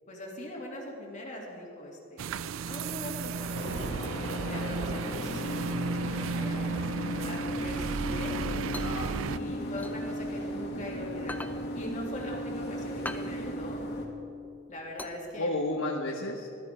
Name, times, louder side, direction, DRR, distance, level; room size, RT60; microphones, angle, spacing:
voice 1, 0.1-2.3 2.6-3.8 4.4-8.4 9.4-11.4 11.7-13.8 14.7-15.6, left 1 dB, 40° left, -2 dB, 2.7 m, -41 dB
sound 1, 2.2-9.4, right 5 dB, 70° right, 0.4 m, -34 dB
sound 2, 3.5-14.1, left 1 dB, 55° left, 2.4 m, -36 dB
voice 2, 8.2-9.6 15.4-16.5, left 2 dB, 80° left, -1 dB, 1.3 m, -34 dB
sound 3, 8.7-10.8 11.2-15.8, left 2 dB, 10° left, 0.6 m, -43 dB
19.0 x 13.0 x 4.5 m, 2.6 s
head